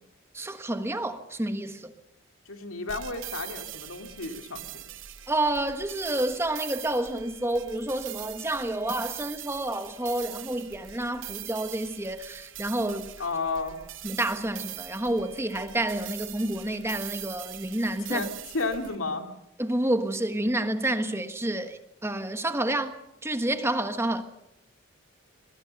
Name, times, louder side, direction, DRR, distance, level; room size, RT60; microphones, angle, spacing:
voice 1, 0.3-1.9 5.3-13.1 14.0-18.3 19.6-23.0 23.2-24.2, right 1 dB, 10° right, 1.3 m, -29 dB
voice 2, 2.5-4.8 13.2-13.8 18.1-19.4, left 3 dB, 85° left, 2.7 m, -32 dB
broken music, 2.9-18.9, right 13 dB, 65° right, 0.9 m, -42 dB
22.0 x 21.5 x 6.6 m
head